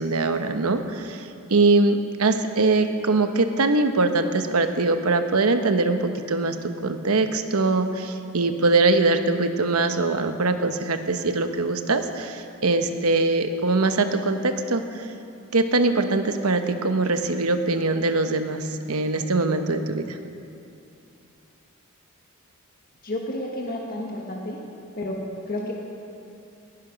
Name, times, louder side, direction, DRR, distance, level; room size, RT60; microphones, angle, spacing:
voice 1, 0.0-6.6 6.8-15.0 15.5-20.2, right 3 dB, 90° right, 8 dB, 1.0 m, -22 dB
voice 2, 23.0-24.6 25.0-25.2 25.5-25.7, left 1 dB, 40° left, -1 dB, 1.5 m, -30 dB
19.0 x 12.0 x 5.2 m, 2.7 s
head